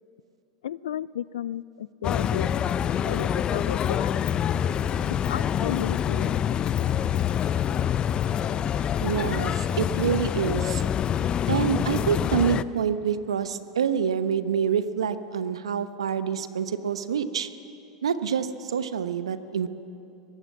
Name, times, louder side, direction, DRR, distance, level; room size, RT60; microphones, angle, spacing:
voice 1, 0.6-2.7 3.0-4.2 5.2-6.4 6.8-7.0, left 10 dB, 75° left, 21 dB, 0.4 m, -34 dB
sound 1, 2.0-12.6, left 9 dB, 30° left, 0.6 m, -26 dB
voice 2, 9.0-10.8 11.5-17.5 18.0-19.7, right 7 dB, 80° right, 12 dB, 1.0 m, -27 dB
22.0 x 17.0 x 7.4 m, 2.8 s
hypercardioid pair, 90°, 3 cm